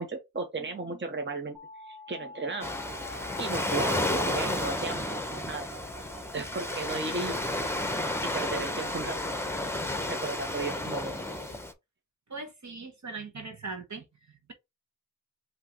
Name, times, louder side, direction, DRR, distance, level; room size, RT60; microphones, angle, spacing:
voice 1, 0.0-1.6 1.8-2.7 3.1-5.7 6.3-7.6 8.3-9.2 10.0-11.2, right 3 dB, 35° right, 1.0 m, -35 dB
sound 1, 1.5-11.5, right 1 dB, 75° right, 1.8 m, -47 dB
Waves surf, 2.6-11.7, left 1 dB, 5° left, 0.9 m, -32 dB
voice 2, 12.3-14.5, right 3 dB, 55° right, 1.4 m, -40 dB
5.5 x 3.0 x 3.0 m
wide cardioid pair, 55°, 33 cm